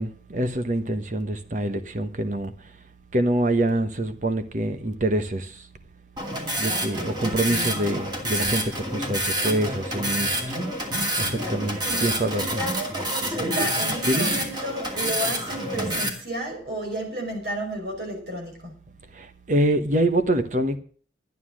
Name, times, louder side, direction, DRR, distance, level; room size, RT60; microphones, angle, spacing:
voice 1, 0.0-2.5 3.1-5.6 6.6-10.6 11.2-12.6 14.1-14.4 19.1-20.8, right 1 dB, 45° right, 1.2 m, -25 dB
sound 1, 6.2-16.1, right 1 dB, 25° right, 2.4 m, -28 dB
voice 2, 12.4-18.7, right 1 dB, 60° right, 5.2 m, -32 dB
11.5 x 9.6 x 6.3 m
head